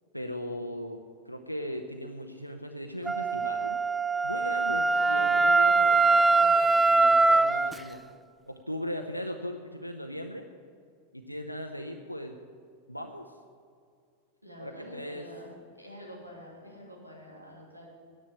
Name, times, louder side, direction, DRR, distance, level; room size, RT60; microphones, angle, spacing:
voice 1, 0.1-3.8 4.2-8.0 8.5-10.5 11.1-12.3 12.9-13.3 14.6-15.2, equal, 90° left, 3 dB, 0.7 m, -38 dB
Wind instrument woodwind instrument, 3.1-7.7, right 3 dB, 10° right, 0.3 m, -22 dB
voice 2, 5.0-5.4 14.4-17.9, equal, 90° right, -2 dB, 2.7 m, -47 dB
10.0 x 8.7 x 8.9 m, 2.2 s
figure-of-eight pair, 90°, 0 cm